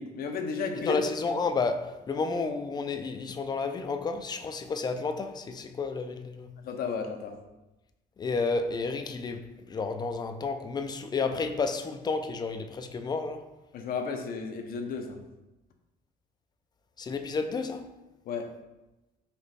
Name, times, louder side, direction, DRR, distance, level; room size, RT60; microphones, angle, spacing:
voice 1, 0.0-1.0 6.6-7.4 13.7-15.2 18.2-18.5, left 5 dB, 60° left, 4 dB, 0.6 m, -33 dB
voice 2, 0.8-6.5 8.2-13.5 17.0-17.9, left 4 dB, 25° left, 7 dB, 0.4 m, -31 dB
4.2 x 3.0 x 3.3 m, 1.0 s
cardioid pair, 110°, 17 cm